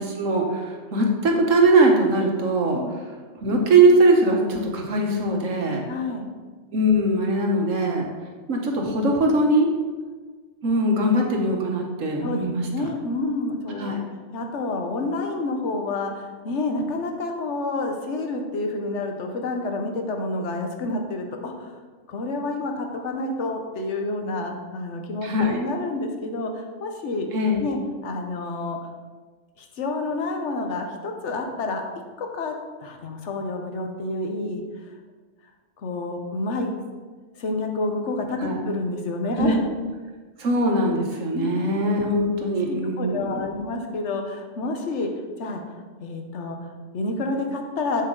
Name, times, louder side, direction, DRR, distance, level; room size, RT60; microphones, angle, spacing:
voice 1, 0.0-2.8 3.4-5.8 6.7-8.1 8.5-9.7 10.6-12.9 13.8-14.0 25.2-25.6 27.3-27.8 38.4-38.6 39.3-39.6 40.4-43.4, right 1 dB, 85° right, 1 dB, 1.6 m, -21 dB
voice 2, 5.9-6.3 12.2-13.9 14.3-21.8 22.1-27.3 27.6-28.8 29.6-31.8 32.2-32.5 32.8-34.6 35.8-36.7 37.4-39.6 41.3-41.6 42.7-45.1 45.4-45.6 46.0-48.0, left 2 dB, 65° left, 3 dB, 1.3 m, -29 dB
7.6 x 7.3 x 3.9 m, 1.4 s
omnidirectional pair, 1.3 m